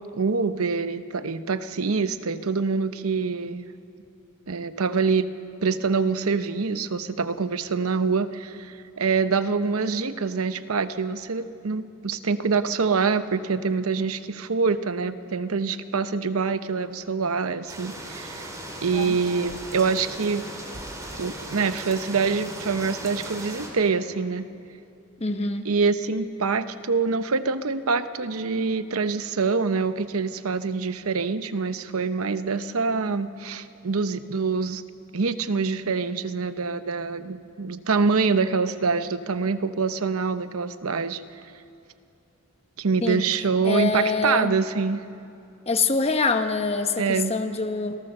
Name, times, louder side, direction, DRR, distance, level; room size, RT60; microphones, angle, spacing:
voice 1, 0.1-3.7 4.5-5.3 5.6-18.5 18.8-20.4 21.2-24.5 25.6-34.8 35.1-41.2 42.8-45.0 47.0-47.3, right 4 dB, 85° right, 11 dB, 0.8 m, -25 dB
sound 1, 17.7-23.7, right 1 dB, 15° right, 3.0 m, -37 dB
voice 2, 25.2-25.7 43.0-43.2 43.6-44.5 45.7-48.0, left 4 dB, 30° left, 7 dB, 1.1 m, -25 dB
28.0 x 17.5 x 6.7 m, 2.7 s
head